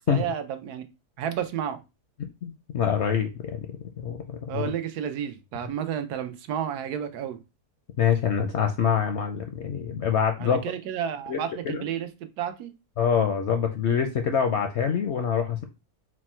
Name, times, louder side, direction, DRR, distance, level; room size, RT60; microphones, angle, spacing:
voice 1, 0.1-0.8 1.2-1.8 4.5-7.4 10.4-12.7, right 9 dB, 85° right, 1.2 m, -31 dB
voice 2, 2.4-3.8 4.0-4.2 4.5-4.6 8.0-10.6 11.3-11.4 11.6-11.8 13.0-15.6, left 7 dB, 65° left, 0.7 m, -25 dB
4.4 x 2.1 x 4.2 m
omnidirectional pair, 1.6 m